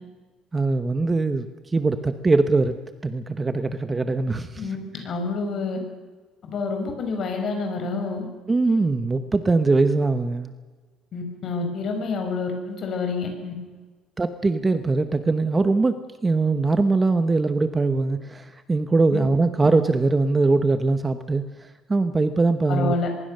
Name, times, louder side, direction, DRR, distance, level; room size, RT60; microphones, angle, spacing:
voice 1, 0.5-2.8 3.0-4.6 8.5-10.5 14.2-15.9 16.2-22.9, right 3 dB, 15° right, 10 dB, 1.0 m, -22 dB
voice 2, 5.0-5.8 6.5-8.3 11.1-13.5 19.1-19.2 22.7-23.1, left 3 dB, 40° left, 4 dB, 6.1 m, -28 dB
24.0 x 22.0 x 6.7 m, 1.4 s
cardioid pair, 155°, 0 cm